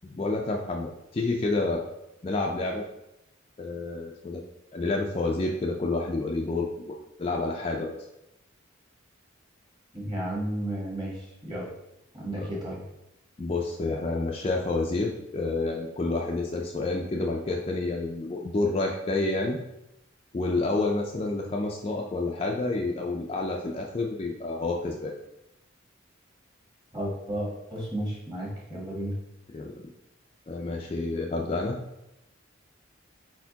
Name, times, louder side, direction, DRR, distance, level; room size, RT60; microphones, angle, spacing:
voice 1, 0.1-1.8 2.2-2.8 3.6-4.4 4.7-8.0 12.4-12.5 13.4-19.6 20.3-25.1 29.5-29.7 30.5-31.8, left 2 dB, 30° left, 0 dB, 0.4 m, -29 dB
voice 2, 9.9-11.7 12.1-12.8 26.9-29.2, right 1 dB, 20° right, -4 dB, 1.3 m, -33 dB
4.3 x 4.2 x 2.8 m, 0.87 s
head